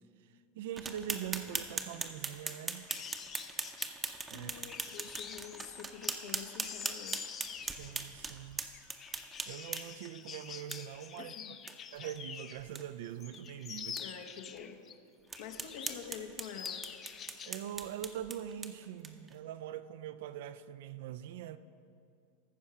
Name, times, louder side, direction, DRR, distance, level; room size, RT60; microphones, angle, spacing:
voice 1, 0.6-2.9 4.3-4.5 7.6-8.6 9.5-11.3 11.9-14.0 17.4-21.6, right 10 dB, 70° right, 0.4 m, -43 dB
sound 1, 0.8-10.1 10.7-10.8 11.2-11.3 11.7-11.8 12.1-12.2 12.6-12.8 13.3-13.4 14.0-14.1 14.6-14.7 15.3-19.3, right 4 dB, 20° right, 0.7 m, -40 dB
sound 2, 2.9-12.7 13.0-14.9 15.3-16.1 16.4-17.6 17.9-18.1, left 8 dB, 35° left, 0.5 m, -47 dB
voice 2, 4.3-7.4 11.2-11.6 14.0-14.8 15.4-16.8, left 8 dB, 70° left, 1.1 m, -47 dB
14.5 x 4.8 x 5.8 m
hypercardioid pair, 110°, 0 cm